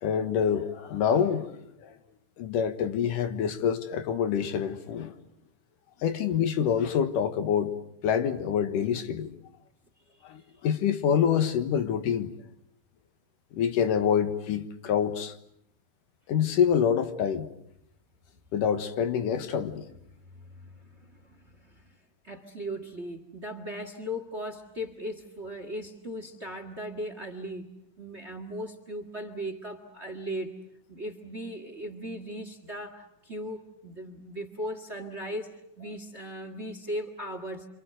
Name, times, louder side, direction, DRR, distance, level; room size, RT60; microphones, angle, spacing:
voice 1, 0.0-2.0 2.4-5.2 6.0-7.8 8.0-9.3 10.2-12.3 13.5-15.3 16.3-17.5 18.5-19.8, left 8 dB, 80° left, 3.0 m, -26 dB
voice 2, 20.3-21.9 22.2-30.6 30.9-37.7, equal, 30° right, 1.5 m, -38 dB
28.0 x 27.0 x 7.8 m
omnidirectional pair, 3.8 m